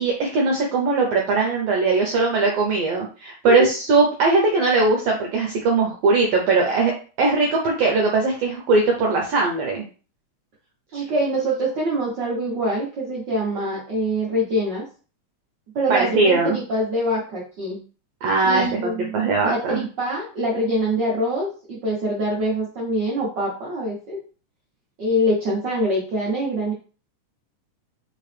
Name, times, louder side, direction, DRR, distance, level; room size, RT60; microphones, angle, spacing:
voice 1, 0.0-6.9 7.2-9.8 10.9-11.0 15.9-16.6 18.2-19.8, right 3 dB, 70° right, 1 dB, 1.6 m, -20 dB
voice 2, 10.9-14.8 15.7-17.8 18.4-19.2 19.4-24.2 25.0-26.7, equal, 90° right, -5 dB, 0.9 m, -24 dB
5.0 x 2.9 x 3.3 m, 0.37 s
omnidirectional pair, 3.4 m